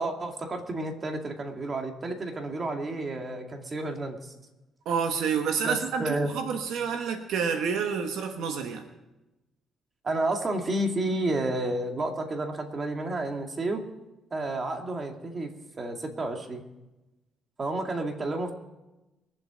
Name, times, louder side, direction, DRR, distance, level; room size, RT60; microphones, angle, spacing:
voice 1, 0.0-4.3 5.6-6.3 10.0-13.8 14.3-15.5 15.8-16.6 17.6-18.5, right 2 dB, 35° right, 3 dB, 2.3 m, -31 dB
voice 2, 4.8-8.8, right 6 dB, 85° right, 6 dB, 1.3 m, -29 dB
23.5 x 7.9 x 5.1 m, 1.0 s
cardioid pair, 90°, 0 cm